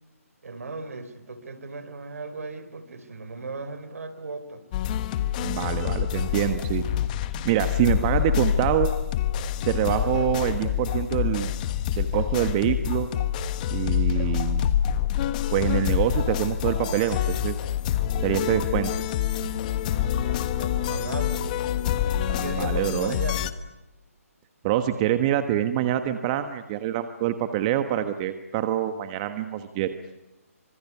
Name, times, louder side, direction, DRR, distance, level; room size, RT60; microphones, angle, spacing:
voice 1, 0.4-4.6 20.0-21.5 22.4-23.5, right 3 dB, 70° right, 11 dB, 4.4 m, -36 dB
sound 1, 4.7-23.5, left 10 dB, 30° left, 1.4 m, -26 dB
voice 2, 5.4-6.9 7.4-8.9 9.7-11.6 11.9-13.1 13.7-14.6 15.5-17.6 18.2-18.9 22.3-23.1 24.6-29.9, right 12 dB, 25° right, 9 dB, 1.3 m, -25 dB
26.0 x 25.0 x 8.5 m, 0.98 s
hypercardioid pair, 150°, 8 cm